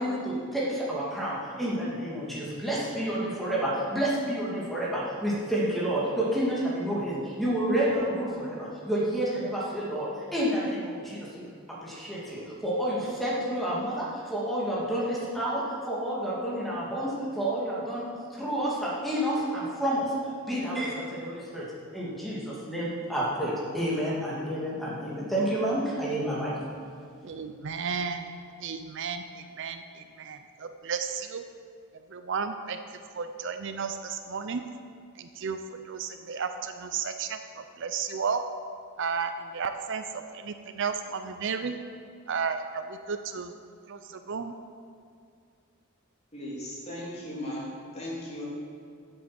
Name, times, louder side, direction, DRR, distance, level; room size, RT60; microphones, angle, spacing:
voice 1, 0.0-11.5 11.8-18.1 18.3-20.1 20.5-21.7 21.9-26.5, right 1 dB, ahead, -7 dB, 2.4 m, -29 dB
voice 2, 27.2-31.4 32.1-32.8 33.1-34.6 35.2-35.6 35.8-38.4 39.0-41.8 42.3-43.5 43.9-44.5, right 6 dB, 55° right, 8 dB, 0.5 m, -33 dB
voice 3, 46.3-48.4, left 1 dB, 30° left, -6 dB, 3.1 m, -37 dB
8.4 x 7.9 x 7.6 m, 2.3 s
head